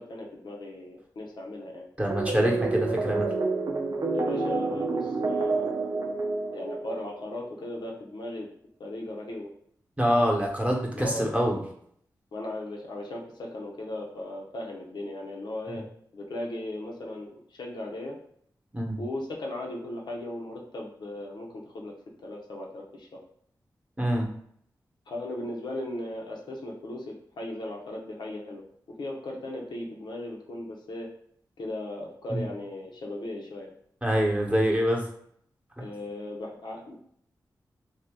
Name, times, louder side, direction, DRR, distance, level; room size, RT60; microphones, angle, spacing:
voice 1, 0.0-1.9 4.1-5.9 6.5-8.5 8.8-9.5 11.0-11.3 12.3-15.9 16.1-18.2 19.0-21.9 22.2-23.2 25.1-28.6 29.0-31.1 31.6-33.7 35.8-37.0, left 1 dB, 80° left, -1 dB, 0.7 m, -37 dB
voice 2, 2.0-3.3 10.0-11.6 15.7-15.8 18.7-19.0 24.0-24.3 32.3-32.4 34.0-35.0, equal, 15° right, -1 dB, 0.9 m, -25 dB
sound 1, 2.1-7.3, right 3 dB, 50° right, 0.5 m, -29 dB
2.7 x 2.2 x 3.4 m, 0.66 s
cardioid pair, 45°, 8 cm